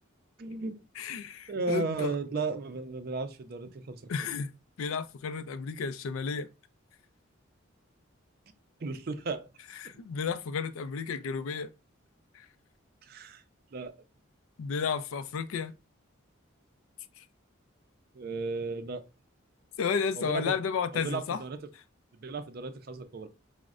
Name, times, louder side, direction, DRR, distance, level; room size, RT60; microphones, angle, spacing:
voice 1, 0.4-0.8 1.5-4.1 8.8-9.5 13.0-13.4 13.7-13.9 18.1-19.1 20.1-20.5 20.9-21.6 22.2-23.3, right 3 dB, 45° right, 0.4 m, -34 dB
voice 2, 1.0-2.2 4.1-4.5 4.8-6.5 9.8-11.7 12.3-12.5 14.6-15.7 17.2-17.3 19.8-21.4, left 6 dB, 80° left, 0.4 m, -32 dB
5.1 x 2.1 x 2.4 m
head